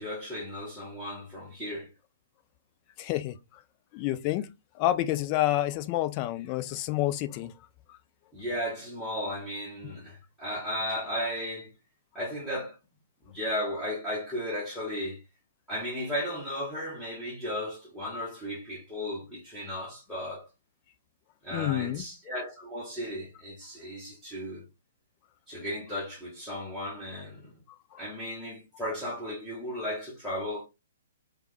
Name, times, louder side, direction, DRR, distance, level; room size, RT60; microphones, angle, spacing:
voice 1, 0.0-1.9 8.3-11.7 12.1-12.8 13.2-15.2 15.7-20.5 21.4-24.6 25.5-27.5 28.0-30.7, equal, 5° left, 0.9 m, -35 dB
voice 2, 3.0-3.6 3.9-4.5 4.7-7.5 7.9-8.0 21.5-22.0 27.9-28.0, left 14 dB, 30° left, 0.3 m, -29 dB
3.2 x 2.1 x 3.0 m
figure-of-eight pair, 120°, 0 cm